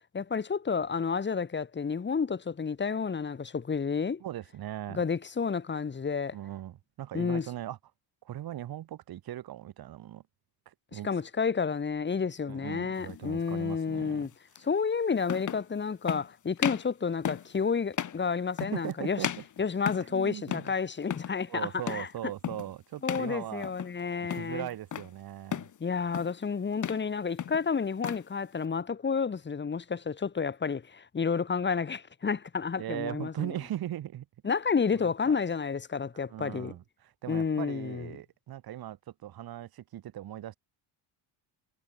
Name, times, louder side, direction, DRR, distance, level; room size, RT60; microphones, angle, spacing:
voice 1, 0.1-4.2 4.9-6.4 7.1-7.5 10.9-14.3 14.6-19.2 19.6-22.1 23.0-24.7 25.8-33.5 34.4-36.7 37.3-38.1, left 5 dB, 25° left, 5.5 m, -30 dB
voice 2, 4.2-5.1 6.3-7.8 8.2-10.2 10.7-11.1 12.5-14.3 18.7-19.4 20.1-20.7 21.5-23.7 24.4-25.7 32.8-34.3 35.3-35.4 36.3-40.6, right 12 dB, 60° right, 4.3 m, -39 dB
sound 1, 13.0-13.2 14.6-14.7 15.2-15.7 16.1-16.3 16.6-16.9 17.3-17.5 17.9-18.2 18.6-18.9 19.2-20.2 20.5-20.8 21.0-21.4 21.9-22.1 22.4-22.7 23.1-23.3 23.6-24.0 24.3-25.1 25.5-25.8 26.1-26.4 26.7-27.1 27.4-28.3, left 9 dB, 45° left, 4.8 m, -35 dB
cardioid pair, 145°, 42 cm